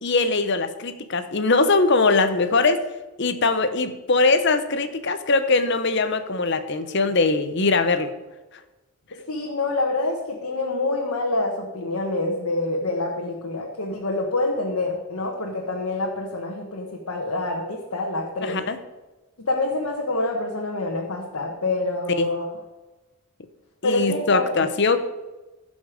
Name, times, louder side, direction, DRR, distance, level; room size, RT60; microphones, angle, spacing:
voice 1, 0.0-2.8 3.2-8.1 18.4-18.8 22.2-22.3 23.8-25.0, left 3 dB, 55° left, 10 dB, 0.8 m, -21 dB
voice 2, 9.3-18.6 19.5-22.5 23.8-24.6, left 2 dB, 85° left, -1 dB, 1.3 m, -26 dB
15.0 x 5.3 x 5.1 m, 1.1 s
head